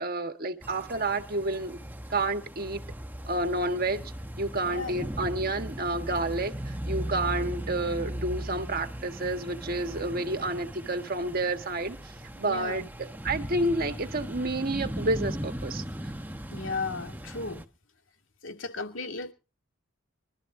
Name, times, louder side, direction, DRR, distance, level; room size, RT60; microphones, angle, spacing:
voice 1, 0.0-1.8 2.1-2.8 3.3-12.0 12.4-15.8, right 2 dB, 50° right, 1.6 m, -30 dB
sound 1, 0.6-17.7, equal, 10° right, 1.1 m, -38 dB
voice 2, 4.6-4.9 12.4-12.9 16.5-17.6 18.4-19.3, left 3 dB, 80° left, 2.4 m, -35 dB
25.5 x 13.0 x 2.7 m
head